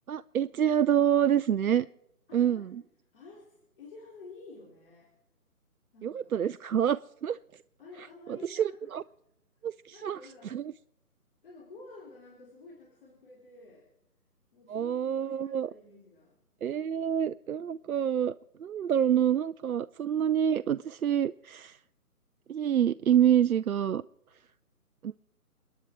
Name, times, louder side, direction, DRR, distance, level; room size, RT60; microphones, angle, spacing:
voice 1, 0.1-1.9 2.3-2.8 6.0-7.4 8.3-9.0 9.6-10.2 10.5-10.6 14.7-15.7 16.6-18.3 18.6-21.8 22.5-24.0 25.0-25.1, right 9 dB, 70° right, 15 dB, 0.5 m, -27 dB
voice 2, 2.3-2.9 3.1-5.1 5.9-6.4 7.8-8.9 9.9-10.5 11.4-13.8 14.5-16.3, left 3 dB, 35° left, -4 dB, 4.0 m, -51 dB
29.0 x 10.0 x 4.6 m, 0.85 s
figure-of-eight pair, 160°, 46 cm